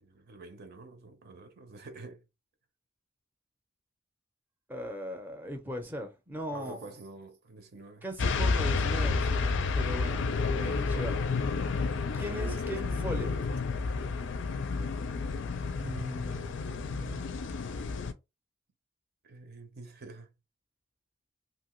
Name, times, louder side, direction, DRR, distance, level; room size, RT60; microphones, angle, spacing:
voice 1, 0.0-2.2 6.5-8.0 12.2-13.4 16.9-17.3 19.2-20.3, right 3 dB, 55° right, 0.6 m, -47 dB
voice 2, 4.7-6.9 8.0-11.2 12.1-13.3 15.8-16.6, equal, 10° right, 0.5 m, -39 dB
sound 1, 8.2-18.1, left 4 dB, 65° left, 0.4 m, -30 dB
2.8 x 2.6 x 3.0 m
head